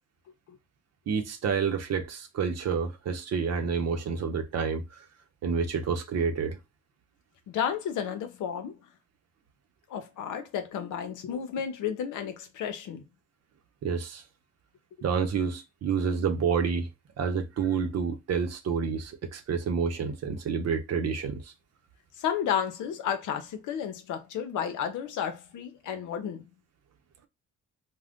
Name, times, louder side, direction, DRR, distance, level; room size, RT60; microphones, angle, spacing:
voice 1, 1.1-5.0 5.4-6.6 13.8-14.2 15.0-16.9 17.2-21.5, right 6 dB, 55° right, 0.7 m, -29 dB
voice 2, 7.5-8.8 9.9-13.0 22.2-26.5, left 8 dB, 80° left, 0.7 m, -32 dB
2.4 x 2.2 x 3.5 m
cardioid pair, 90°, 30 cm